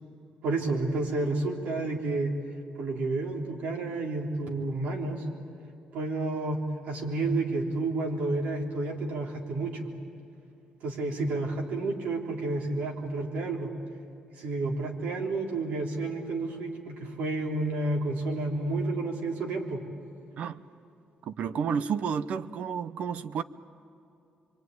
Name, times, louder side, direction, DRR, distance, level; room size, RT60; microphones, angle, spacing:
voice 1, 0.4-2.3 2.8-5.2 5.9-9.9 10.8-13.7 14.4-19.8, right 2 dB, 75° right, 1 dB, 3.6 m, -30 dB
voice 2, 21.2-23.4, right 7 dB, 55° right, 14 dB, 0.7 m, -31 dB
26.0 x 23.5 x 9.4 m, 2.6 s
cardioid pair, 180°, 3 cm